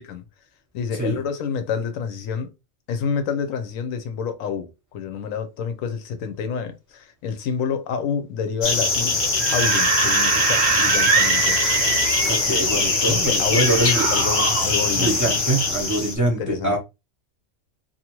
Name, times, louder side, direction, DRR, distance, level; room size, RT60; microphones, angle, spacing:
voice 1, 0.7-2.5 2.9-9.2 9.5-11.6 13.0-15.3 16.2-16.8, left 6 dB, 85° left, 1.0 m, -28 dB
sound 1, 8.6-16.1, left 3 dB, 40° left, 0.7 m, -22 dB
Screaming / Screech, 9.2-12.6 13.6-14.7, right 6 dB, 65° right, 0.8 m, -23 dB
voice 2, 12.3-14.0 15.0-16.8, right 2 dB, 20° right, 0.6 m, -24 dB
2.7 x 2.4 x 2.9 m
omnidirectional pair, 1.4 m